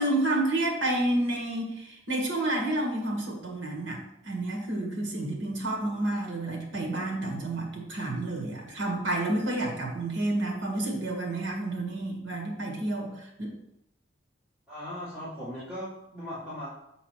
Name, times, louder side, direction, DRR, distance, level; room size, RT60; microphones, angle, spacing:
voice 1, 0.0-13.5, right 1 dB, 80° right, 1 dB, 1.7 m, -30 dB
voice 2, 14.7-16.7, equal, 5° right, -14 dB, 2.8 m, -38 dB
7.5 x 4.1 x 4.6 m, 0.82 s
head